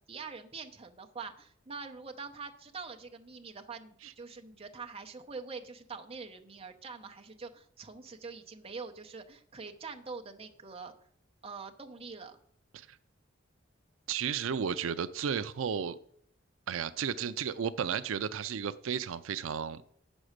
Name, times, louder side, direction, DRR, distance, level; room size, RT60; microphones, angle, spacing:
voice 1, 0.1-10.9 11.4-12.4, right 4 dB, 30° right, 0.8 m, -44 dB
voice 2, 14.1-16.0 16.7-19.8, right 7 dB, 85° right, 0.4 m, -33 dB
8.5 x 6.2 x 6.5 m
head